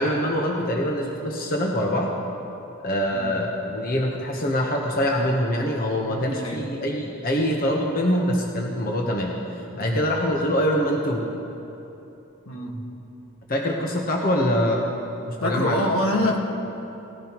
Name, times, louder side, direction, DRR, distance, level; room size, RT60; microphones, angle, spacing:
voice 1, 0.0-2.1 2.8-9.4 9.7-11.3 13.5-14.8 15.3-15.9, equal, 40° left, 0 dB, 1.0 m, -24 dB
voice 2, 6.0-6.6 9.8-10.0 12.5-12.8 15.4-16.4, left 1 dB, 75° left, 0 dB, 1.6 m, -26 dB
19.0 x 14.5 x 3.0 m, 3.0 s
head